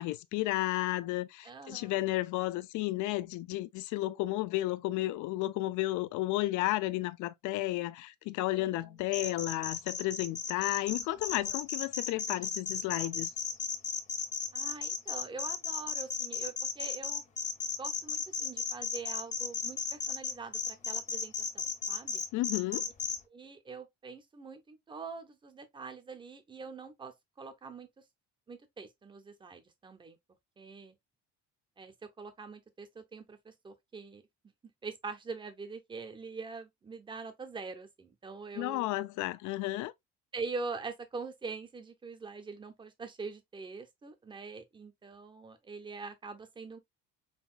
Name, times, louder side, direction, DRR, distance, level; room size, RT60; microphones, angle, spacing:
voice 1, 0.0-13.3 22.3-22.8 38.6-39.9, left 17 dB, 65° left, 0.5 m, -32 dB
voice 2, 1.4-2.0 8.5-9.0 14.5-17.2 17.8-22.2 23.3-27.9 28.5-30.2 30.6-31.0 31.8-34.5 34.8-38.9 40.3-46.8, right 4 dB, 15° right, 0.6 m, -44 dB
sound 1, 9.1-23.2, left 5 dB, 25° left, 0.6 m, -34 dB
5.7 x 2.3 x 2.4 m
cardioid pair, 160°, 32 cm